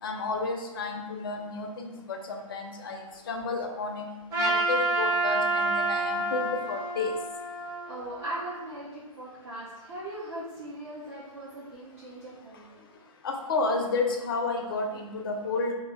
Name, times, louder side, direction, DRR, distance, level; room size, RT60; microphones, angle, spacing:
voice 1, 0.0-4.0 4.4-7.2 13.2-15.7, left 3 dB, 40° left, 2 dB, 0.4 m, -31 dB
Trumpet, 4.3-8.6, right 2 dB, 15° right, 0.7 m, -29 dB
voice 2, 7.6-12.7, right 1 dB, 50° right, -7 dB, 0.6 m, -39 dB
2.1 x 2.0 x 3.2 m, 1.2 s
figure-of-eight pair, 125°, 18 cm